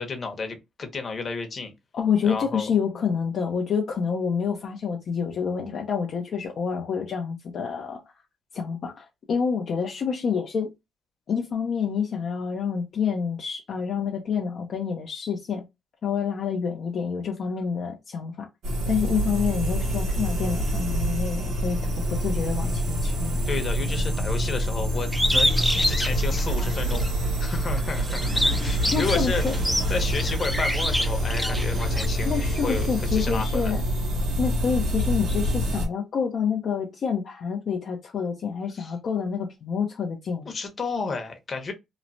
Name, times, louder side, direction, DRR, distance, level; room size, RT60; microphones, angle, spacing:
voice 1, 0.0-1.7 2.2-2.7 23.5-27.1 27.4-29.6 29.9-32.3 32.6-33.7 38.7-38.9 40.5-41.7, left 4 dB, 40° left, 0.9 m, -32 dB
voice 2, 1.9-8.0 8.5-10.7 11.3-15.6 16.0-18.5 18.9-21.8 22.1-23.4 28.9-29.5 32.2-33.8 34.4-40.5, left 6 dB, 60° left, 0.5 m, -28 dB
sound 1, 18.6-35.9, equal, 75° right, 1.2 m, -26 dB
Bird, 25.1-27.1 27.6-32.1, equal, ahead, 0.4 m, -26 dB
3.0 x 2.1 x 2.6 m
cardioid pair, 90°, 0 cm